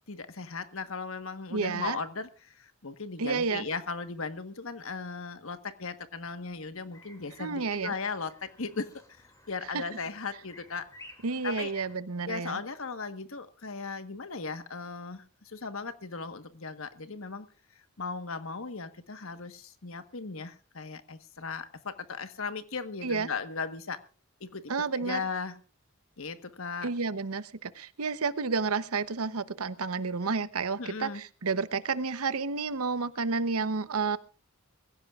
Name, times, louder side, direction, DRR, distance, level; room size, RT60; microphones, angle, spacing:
voice 1, 0.1-8.9 9.5-10.9 11.4-11.7 12.3-17.5 18.0-24.0 24.4-25.6 26.2-26.9 30.8-31.2, left 4 dB, 70° left, 1.4 m, -37 dB
voice 2, 1.5-2.0 3.2-3.6 7.4-7.9 9.7-9.8 11.2-12.6 23.0-23.3 24.7-25.2 26.8-34.2, right 4 dB, 80° right, 0.9 m, -30 dB
sound 1, 6.9-11.9, left 2 dB, 15° left, 2.5 m, -52 dB
22.5 x 16.0 x 2.5 m
head